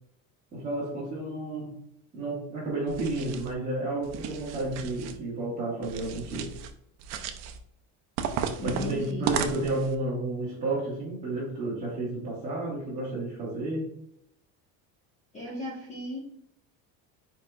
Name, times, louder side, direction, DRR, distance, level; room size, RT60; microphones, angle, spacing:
voice 1, 0.5-1.8 2.1-6.5 8.6-13.9, right 2 dB, 15° right, -9 dB, 1.6 m, -31 dB
sound 1, 2.9-3.5 4.0-5.2 5.8-6.7 7.0-7.6 8.2-9.9, right 7 dB, 45° right, 0.5 m, -34 dB
voice 2, 8.6-9.3 15.3-16.2, left 2 dB, 20° left, -5 dB, 1.1 m, -36 dB
4.7 x 4.5 x 2.4 m, 0.71 s
cardioid pair, 175°, 39 cm